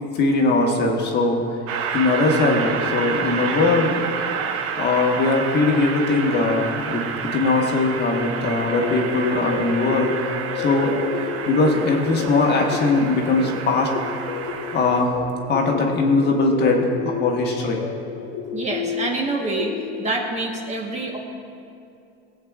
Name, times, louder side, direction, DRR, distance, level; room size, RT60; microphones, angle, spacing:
voice 1, 0.1-1.4 1.9-4.0 4.8-7.0 7.3-10.1 10.5-10.9 11.5-13.9 14.7-15.1 15.5-17.8, left 3 dB, 35° left, 1 dB, 1.2 m, -20 dB
Train, 1.7-15.0, right 7 dB, 50° right, 0.9 m, -29 dB
sound 1, 8.8-20.1, left 7 dB, 80° left, 1.0 m, -32 dB
voice 2, 18.5-21.2, right 2 dB, 25° right, 1 dB, 1.1 m, -26 dB
21.0 x 7.9 x 2.4 m, 2.6 s
cardioid pair, 135°, 29 cm